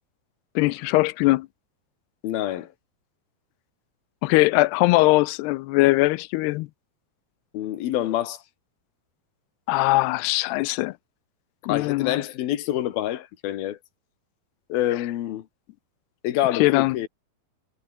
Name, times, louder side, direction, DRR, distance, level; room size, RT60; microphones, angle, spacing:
voice 1, 0.6-1.5 4.2-6.7 9.7-10.9 11.7-12.2 16.6-17.0, left 20 dB, 90° left, 2.7 m, -21 dB
voice 2, 2.2-2.7 7.5-8.4 11.6-13.8 14.7-15.5 16.2-17.1, left 13 dB, 70° left, 3.2 m, -26 dB
omnidirectional pair, 4.7 m